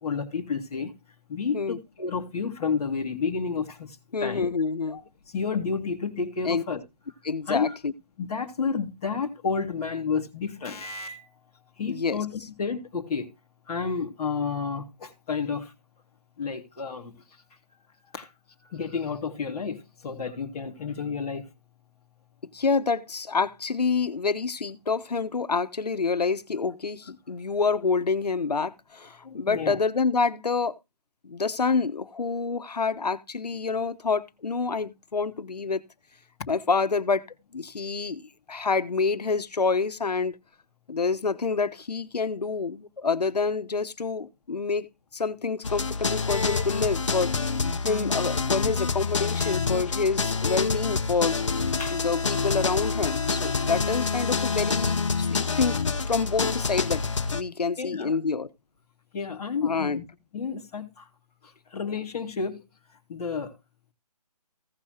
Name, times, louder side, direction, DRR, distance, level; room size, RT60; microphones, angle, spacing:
voice 1, 0.0-0.9 1.3-3.9 4.2-4.5 4.9-5.0 5.3-6.8 7.5-7.8 8.2-11.2 11.8-12.3 12.6-13.3 13.7-15.7 16.4-17.1 18.1-18.3 18.7-21.4 29.2-29.8 46.3-46.6 51.8-52.0 55.4-55.6 57.8-58.2 59.1-60.0 60.3-61.0 61.7-62.6 63.1-63.5, left 5 dB, 5° left, 0.8 m, -30 dB
voice 2, 4.1-5.0 6.4-6.6 7.2-7.9 11.9-12.2 22.4-30.8 31.2-35.8 36.5-37.3 37.5-40.4 40.9-47.4 47.8-51.4 51.9-55.8 56.1-57.0 57.3-58.5 59.6-60.0, left 4 dB, 80° left, 1.0 m, -27 dB
sound 1, 45.6-57.4, left 4 dB, 50° left, 0.8 m, -27 dB
16.0 x 6.5 x 2.8 m
hypercardioid pair, 175°, 20 cm